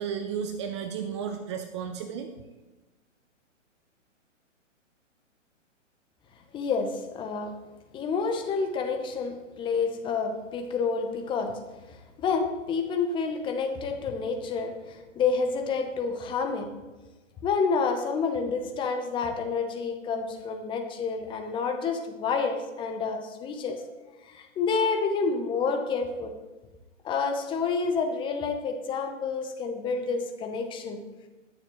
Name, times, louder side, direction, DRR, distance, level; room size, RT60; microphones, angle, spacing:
voice 1, 0.0-2.3, right 7 dB, 25° right, 7 dB, 0.6 m, -33 dB
voice 2, 6.5-7.5 7.9-11.5 11.9-16.7 17.4-23.9 24.2-26.4 27.0-31.0, left 5 dB, 15° left, 5 dB, 0.8 m, -29 dB
21.0 x 7.3 x 3.1 m, 1.2 s
hypercardioid pair, 130°, 38 cm